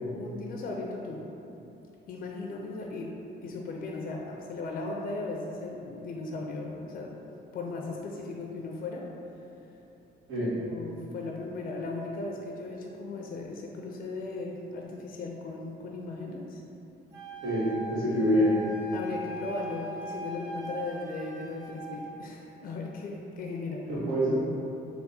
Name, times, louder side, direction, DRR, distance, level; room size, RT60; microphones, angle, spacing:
voice 1, 0.0-1.2 2.1-3.1 3.4-7.2 7.5-9.1 10.4-16.6 18.9-23.9, left 3 dB, 45° left, -1 dB, 0.4 m, -37 dB
Wind instrument woodwind instrument, 17.1-22.1, right 1 dB, 60° right, 1.2 m, -40 dB
voice 2, 17.4-18.5 23.8-24.3, equal, 90° right, -9 dB, 1.1 m, -26 dB
3.4 x 2.0 x 4.0 m, 2.9 s
cardioid pair, 90°, 20 cm